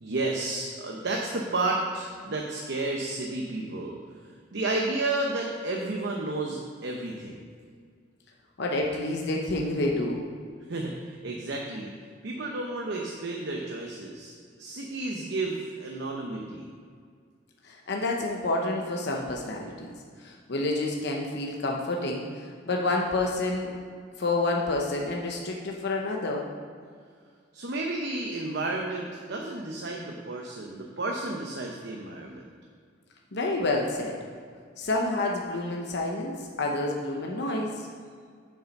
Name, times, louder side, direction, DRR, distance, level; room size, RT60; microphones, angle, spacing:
voice 1, 0.0-4.0 4.5-7.3 10.7-11.9 12.2-14.3 14.6-16.6 27.5-32.4, right 2 dB, 65° right, 0 dB, 0.9 m, -31 dB
voice 2, 8.6-10.2 17.6-19.9 20.2-23.7 24.2-26.5 33.3-34.2 34.8-37.9, left 2 dB, 60° left, 0 dB, 0.9 m, -29 dB
7.3 x 7.1 x 5.3 m, 2.1 s
head